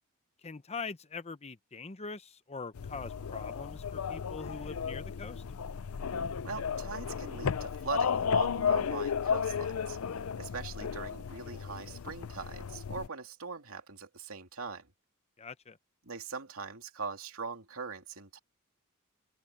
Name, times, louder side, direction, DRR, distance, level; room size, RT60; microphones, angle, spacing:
voice 1, 0.4-5.4 15.4-15.8, left 4 dB, 30° left, 0.8 m, -43 dB
sound 1, 2.7-13.1, left 6 dB, 75° left, 0.5 m, -34 dB
voice 2, 6.4-10.0 10.4-14.9 16.0-18.4, right 4 dB, 70° right, 3.0 m, -41 dB
open air
head